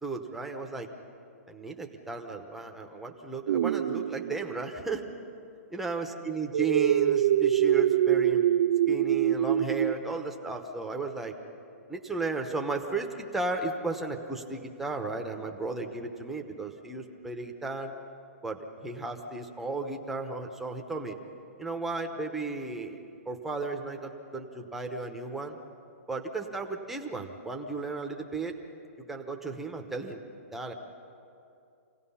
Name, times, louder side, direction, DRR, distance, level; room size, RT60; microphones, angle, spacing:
voice 1, 0.0-0.9 1.5-5.0 5.7-8.5 8.9-11.3 11.9-17.9 18.4-21.2 21.6-23.0 23.3-25.6 26.1-28.5 29.1-30.2 30.5-30.7, right 3 dB, 5° right, 2 dB, 1.0 m, -34 dB
sound 1, 3.5-4.7 6.5-9.9, right 11 dB, 50° right, 0.4 m, -24 dB
27.0 x 17.0 x 5.7 m, 2.6 s
hypercardioid pair, 165°, 8 cm